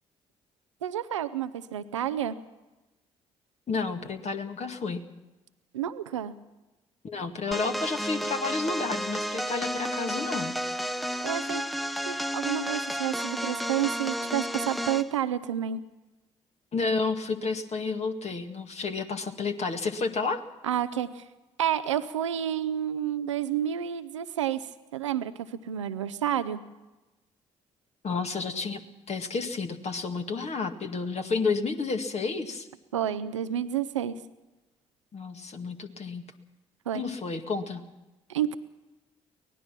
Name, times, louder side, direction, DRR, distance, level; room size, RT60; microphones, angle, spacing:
voice 1, 0.8-2.4 5.7-6.3 11.2-11.6 12.1-15.8 20.6-21.3 21.6-26.6 32.9-34.2 36.9-37.0 38.3-38.5, right 10 dB, 90° right, 13 dB, 0.6 m, -30 dB
voice 2, 3.7-5.1 7.0-10.5 16.7-20.4 28.0-28.8 29.1-32.7 35.1-36.3 36.9-37.8, left 4 dB, 45° left, 6 dB, 2.0 m, -31 dB
sound 1, 7.5-15.1, equal, ahead, 0.8 m, -32 dB
24.0 x 18.0 x 6.0 m, 1.1 s
hypercardioid pair, 45°, 15 cm